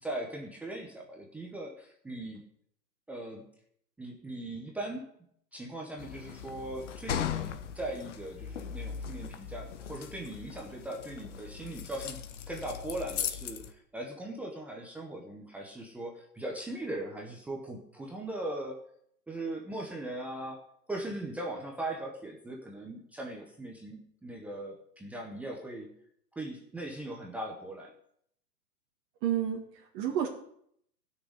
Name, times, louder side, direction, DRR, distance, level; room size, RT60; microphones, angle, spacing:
voice 1, 0.0-2.4 3.1-3.4 4.0-5.1 5.5-12.2 12.5-18.9 19.3-20.6 20.9-25.9 26.4-27.9, right 1 dB, 5° right, 0 dB, 0.8 m, -39 dB
sound 1, 6.0-13.7, left 8 dB, 45° left, 1.3 m, -38 dB
voice 2, 29.2-30.3, right 10 dB, 25° right, -3 dB, 2.1 m, -30 dB
15.0 x 6.6 x 9.6 m, 0.68 s
hypercardioid pair, 150°, 50 cm